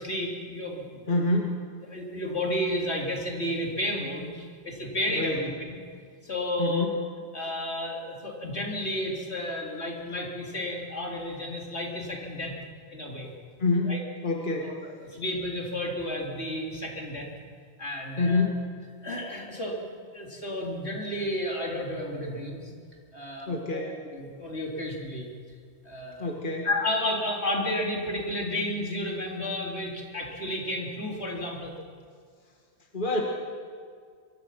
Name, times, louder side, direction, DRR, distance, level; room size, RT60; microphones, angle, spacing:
voice 1, 0.0-1.2 1.9-5.8 6.2-6.9 7.3-12.5 12.9-13.3 13.8-14.0 14.6-17.3 17.8-18.5 19.0-19.9 20.1-22.7 23.1-23.8 24.1-25.3 25.8-26.4 26.6-31.7, left 1 dB, 75° left, -1 dB, 4.1 m, -32 dB
voice 2, 1.1-1.6 5.1-5.4 6.6-7.0 13.6-14.0 14.2-14.8 18.2-18.7 23.5-24.0 26.2-26.7 32.9-33.2, left 3 dB, 50° left, 0 dB, 2.1 m, -27 dB
25.0 x 24.0 x 6.0 m, 2.1 s
omnidirectional pair, 1.1 m